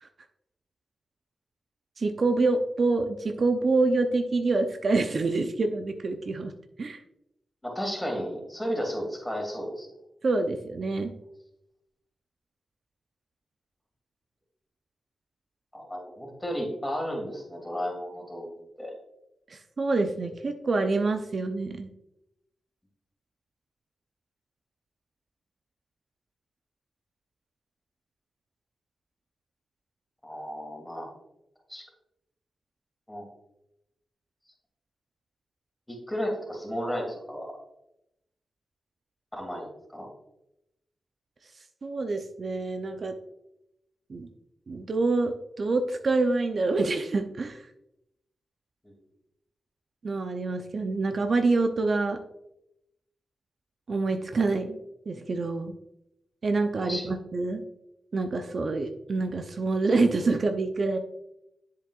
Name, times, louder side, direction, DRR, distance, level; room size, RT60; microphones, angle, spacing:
voice 1, 2.0-6.5 6.8-7.0 10.2-11.1 19.5-21.9 41.8-43.1 44.1-44.3 44.7-47.7 50.0-52.2 53.9-54.8 55.1-55.7 56.4-57.6 58.1-61.0, right 3 dB, 55° right, 6 dB, 0.5 m, -26 dB
voice 2, 7.6-9.9 15.7-18.9 30.2-31.1 31.7-31.8 33.1-33.3 35.9-37.6 39.3-40.1 48.8-48.9 56.8-57.1, equal, 10° left, 1 dB, 2.6 m, -33 dB
7.5 x 7.3 x 2.4 m, 0.85 s
cardioid pair, 60°, 0 cm